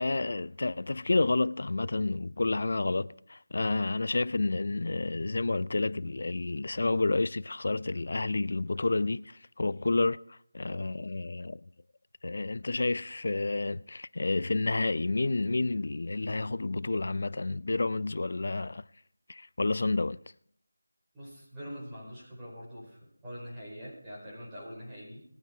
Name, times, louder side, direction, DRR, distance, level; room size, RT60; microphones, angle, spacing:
voice 1, 0.0-11.6 12.2-18.8 19.3-20.2, left 2 dB, 55° left, 0.5 m, -30 dB
voice 2, 21.1-25.2, equal, 10° right, 5.2 m, -44 dB
19.5 x 9.4 x 4.7 m
figure-of-eight pair, 170°, 0 cm